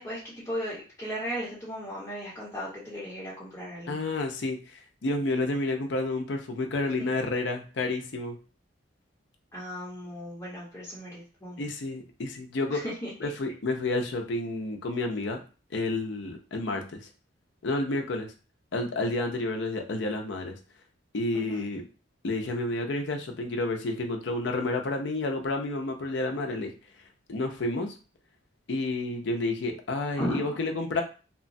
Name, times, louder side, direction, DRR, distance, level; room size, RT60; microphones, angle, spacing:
voice 1, 0.0-4.0 9.5-11.6 12.7-13.1 21.3-21.6 30.2-30.6, equal, 20° left, -9 dB, 0.9 m, -36 dB
voice 2, 3.9-8.4 11.6-12.8 13.2-15.4 15.7-17.0 17.6-18.3 18.7-20.5 21.1-21.8 22.2-26.7 27.3-27.9 28.7-31.0, left 2 dB, 65° left, 3 dB, 0.5 m, -30 dB
2.9 x 2.1 x 2.6 m, 0.35 s
head